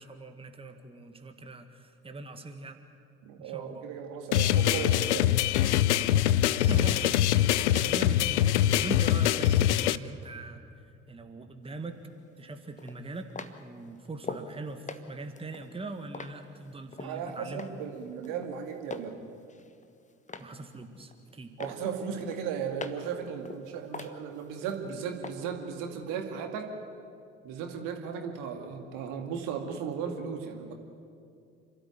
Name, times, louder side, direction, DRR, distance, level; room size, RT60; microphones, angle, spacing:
voice 1, 0.0-2.8 3.4-3.9 6.5-12.0 12.4-13.3 13.6-17.9 20.4-21.8 24.8-25.0, right 2 dB, 15° right, 6 dB, 1.6 m, -41 dB
voice 2, 3.2-5.3 5.7-6.0 7.4-7.6 17.0-19.1 21.6-26.7 27.4-30.7, right 7 dB, 60° right, 4 dB, 2.2 m, -36 dB
sound 1, 4.3-10.0, left 12 dB, 75° left, 0.5 m, -24 dB
sound 2, 11.7-11.8 12.8-14.5 14.9-17.2 17.6-18.0 18.2-19.1 19.5-20.6 20.9-21.3 21.6-23.1 23.5-24.8 25.2-25.3, left 4 dB, 20° left, 1.3 m, -42 dB
27.5 x 13.0 x 9.4 m, 2.5 s
figure-of-eight pair, 50°, 35 cm